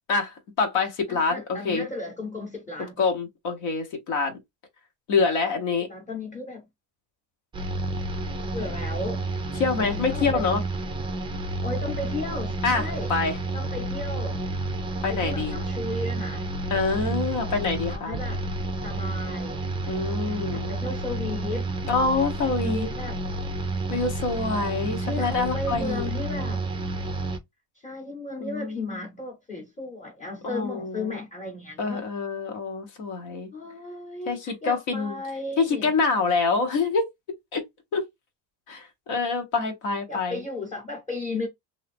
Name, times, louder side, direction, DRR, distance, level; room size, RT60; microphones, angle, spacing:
voice 1, 0.1-1.8 3.0-4.4 5.1-5.9 9.6-10.6 12.6-12.8 13.1-13.4 15.0-15.6 16.7-18.2 19.9-20.7 21.9-22.9 23.9-26.1 28.4-28.9 30.4-31.2 31.8-33.5 34.3-35.2 35.6-37.0 37.5-37.6 37.9-38.0 38.7-40.4, left 4 dB, 70° left, 1.2 m, -26 dB
voice 2, 1.1-3.0 5.9-6.7 8.5-9.2 9.8-10.5 11.6-13.1 13.5-14.4 15.1-16.5 17.9-18.4 18.8-19.6 20.3-21.7 22.6-23.2 25.0-26.6 27.8-32.0 33.5-35.9 40.1-41.5, left 2 dB, 15° left, 0.9 m, -35 dB
sound 1, 7.5-27.4, right 2 dB, 15° right, 0.3 m, -30 dB
2.7 x 2.3 x 3.4 m
cardioid pair, 130°, 46 cm